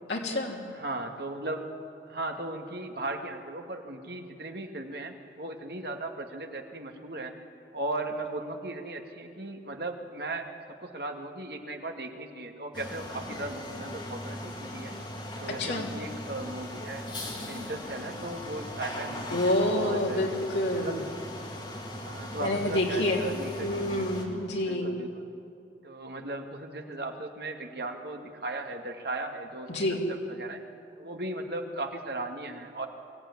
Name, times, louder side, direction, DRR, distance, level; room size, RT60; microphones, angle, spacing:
voice 1, 0.1-0.6 15.6-15.9 19.3-21.0 22.4-23.2 23.6-25.0 29.7-30.0, left 1 dB, 80° left, -1 dB, 3.0 m, -28 dB
voice 2, 0.8-1.7 2.1-7.3 7.7-10.5 10.8-14.9 15.4-17.1 17.5-20.3 20.7-21.0 22.0-24.1 24.6-25.3 25.8-30.6 31.0-32.9, right 2 dB, 60° right, 4 dB, 2.0 m, -37 dB
sound 1, 12.7-24.2, left 1 dB, 25° left, 2.7 m, -39 dB
23.5 x 15.5 x 9.7 m, 2.5 s
head